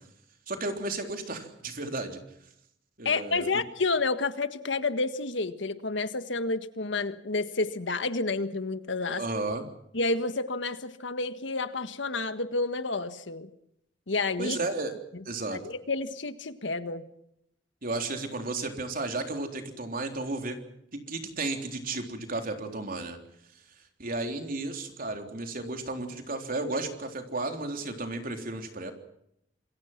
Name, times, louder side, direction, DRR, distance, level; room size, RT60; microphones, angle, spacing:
voice 1, 0.5-2.2 3.0-3.5 9.2-9.7 14.4-15.0 15.3-15.6 17.8-20.6 20.9-23.2 24.0-28.9, right 2 dB, 50° right, 5 dB, 3.7 m, -33 dB
voice 2, 3.0-9.2 9.9-13.5 14.1-14.6 15.5-17.0, left 3 dB, 75° left, 11 dB, 1.6 m, -30 dB
27.5 x 22.0 x 6.0 m, 0.75 s
head